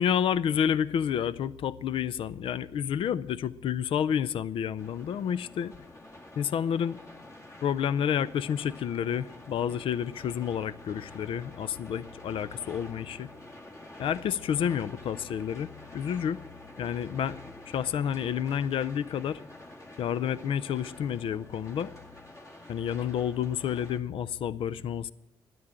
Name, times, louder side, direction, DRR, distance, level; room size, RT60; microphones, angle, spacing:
voice 1, 0.0-5.7 6.4-7.0 7.6-13.3 14.0-16.4 16.8-17.4 17.7-19.4 20.0-21.9 22.7-25.1, left 8 dB, 70° left, 0.4 m, -29 dB
sound 1, 4.8-24.0, left 1 dB, 35° left, 2.0 m, -48 dB
12.5 x 10.5 x 7.5 m
cardioid pair, 70°, 10 cm